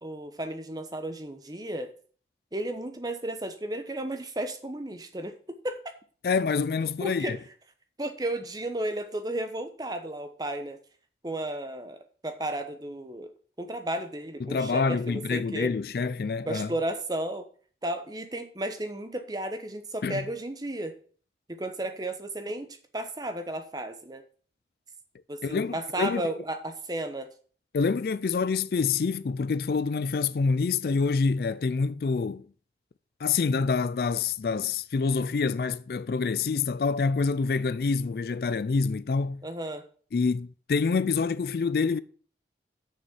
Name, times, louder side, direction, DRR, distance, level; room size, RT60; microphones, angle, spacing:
voice 1, 0.0-1.9 2.5-5.8 7.0-7.4 8.0-10.8 11.2-12.0 12.2-13.3 13.6-15.7 16.5-17.5 17.8-20.9 21.5-22.7 22.9-24.2 25.3-27.3 39.4-39.8, right 1 dB, 20° right, 1.0 m, -33 dB
voice 2, 6.2-7.4 14.4-16.7 20.0-20.2 25.4-26.2 27.7-32.5 33.2-39.4 40.1-42.0, left 4 dB, 55° left, 0.4 m, -27 dB
6.7 x 6.3 x 7.1 m
head